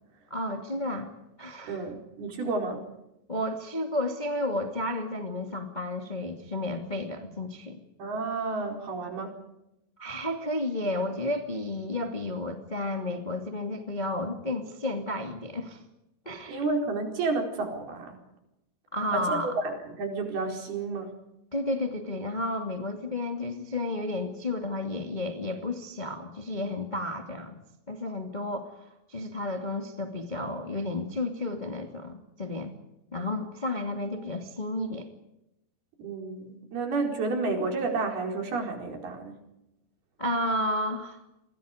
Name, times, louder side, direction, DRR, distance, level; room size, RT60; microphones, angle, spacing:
voice 1, 0.3-1.1 1.4-1.9 3.3-7.8 10.0-15.8 16.2-16.6 18.9-19.5 21.5-27.6 27.9-32.7 33.1-35.1 40.2-41.2, left 1 dB, 15° left, 4 dB, 1.6 m, -32 dB
voice 2, 1.6-2.8 8.0-9.4 16.5-18.2 19.1-21.1 33.2-33.4 36.0-39.4, right 3 dB, 65° right, 3 dB, 6.4 m, -31 dB
29.5 x 23.5 x 5.1 m, 0.88 s
omnidirectional pair, 4.8 m